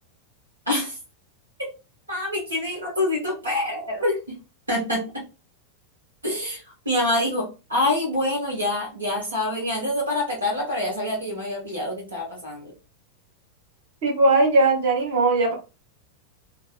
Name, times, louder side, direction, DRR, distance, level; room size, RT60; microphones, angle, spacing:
voice 1, 0.7-1.0 2.1-4.3 4.7-5.0 6.2-12.7, left 1 dB, 80° right, -2 dB, 0.8 m, -26 dB
voice 2, 14.0-15.5, right 2 dB, 55° right, -1 dB, 1.0 m, -19 dB
2.7 x 2.0 x 2.3 m, 0.30 s
figure-of-eight pair, 90°, 0 cm